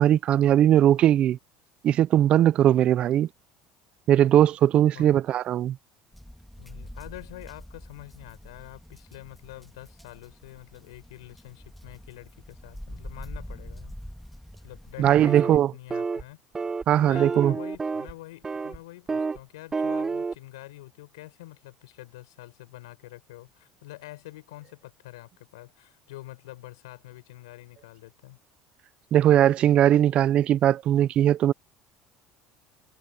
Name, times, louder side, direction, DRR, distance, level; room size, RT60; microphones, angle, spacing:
voice 1, 0.0-1.4 1.8-3.3 4.1-5.8 15.0-15.7 16.9-17.5 29.1-31.5, right 11 dB, 50° right, 0.6 m, -20 dB
sound 1, 6.1-15.3, equal, ahead, 2.8 m, -45 dB
voice 2, 6.6-13.9 14.6-16.4 17.0-28.4, left 18 dB, 90° left, 5.0 m, -46 dB
sound 2, 15.3-15.6 15.9-16.2 16.6-16.8 17.2-18.1 18.4-18.8 19.1-19.4 19.7-20.3, right 4 dB, 25° right, 0.9 m, -29 dB
supercardioid pair, 90°, 2 cm